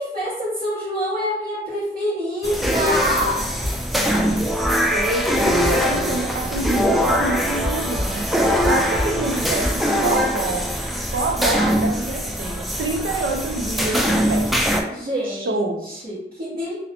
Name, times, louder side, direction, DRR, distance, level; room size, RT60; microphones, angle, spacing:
voice 1, 0.0-3.5 14.9-16.7, equal, 45° right, -12 dB, 1.0 m, -26 dB
sound 1, 2.4-14.8, equal, ahead, 0.3 m, -22 dB
sound 2, 2.6-2.8 3.6-4.8 5.6-6.8 7.6-9.1 9.6-9.7, left 1 dB, 25° right, 0.7 m, -29 dB
voice 2, 4.9-10.6 11.1-14.5 15.2-16.0, right 2 dB, 75° right, 2 dB, 0.5 m, -27 dB
2.5 x 2.1 x 2.8 m, 0.80 s
wide cardioid pair, 45°, 21 cm